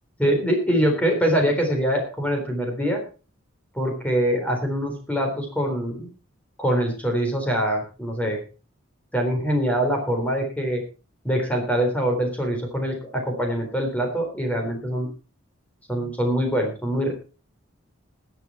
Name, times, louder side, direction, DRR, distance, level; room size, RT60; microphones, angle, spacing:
voice 1, 0.2-3.0 3.7-6.1 6.6-8.4 9.1-10.8 11.2-15.1 15.9-17.1, equal, 5° left, 2 dB, 3.9 m, -24 dB
20.0 x 7.1 x 4.5 m, 0.35 s
head